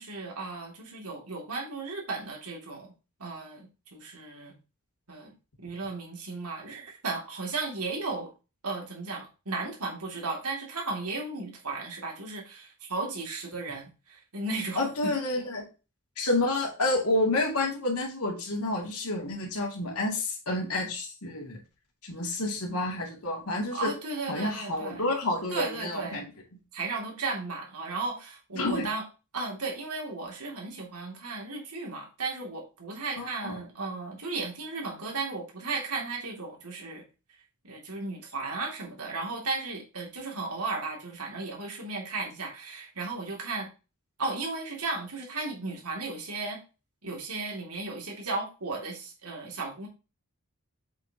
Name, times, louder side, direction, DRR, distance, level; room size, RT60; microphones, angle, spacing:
voice 1, 0.0-2.9 3.2-4.5 5.1-5.3 5.6-8.3 8.6-15.1 23.7-25.0 25.5-26.2 26.7-29.0 29.3-37.0 37.6-43.7 44.2-46.6 47.0-49.9, right 3 dB, 80° right, -1 dB, 2.8 m, -35 dB
voice 2, 14.8-15.7 16.2-21.6 22.0-23.9 24.3-26.3 28.5-28.9 33.2-33.6, left 2 dB, 80° left, -1 dB, 2.7 m, -29 dB
7.5 x 6.4 x 3.0 m, 0.31 s
head